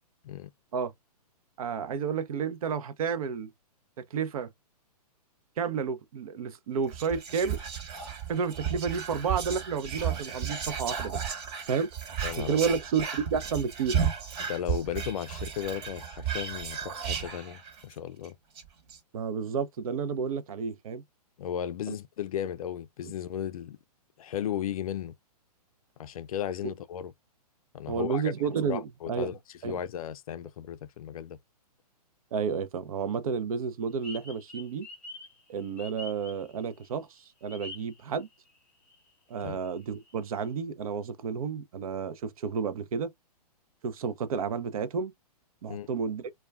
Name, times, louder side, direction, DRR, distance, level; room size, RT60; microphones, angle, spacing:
voice 1, 1.6-3.5 4.1-4.5 5.6-7.6 8.3-11.3 11.7-11.9 12.3-14.0 19.1-21.0 21.9-22.0 23.0-23.1 27.9-29.3 29.6-29.8 32.3-34.9 35.5-38.3 39.3-43.1 43.8-45.1 45.6-46.3, right 6 dB, 60° right, 0.6 m, -31 dB
Whispering, 6.9-17.9 18.2-18.3 18.6-19.0, right 8 dB, 40° right, 1.0 m, -34 dB
voice 2, 12.2-12.6 14.4-18.4 21.4-23.8 24.2-25.1 26.0-27.1 27.7-28.3 28.7-29.4 29.6-31.4 39.4-39.6 45.7-45.9, left 10 dB, 60° left, 0.4 m, -35 dB
sound 1, 34.0-36.8 37.5-38.6 38.9-39.0 39.4-40.4, left 2 dB, 5° left, 0.8 m, -46 dB
2.3 x 2.2 x 3.3 m
hypercardioid pair, 130°, 21 cm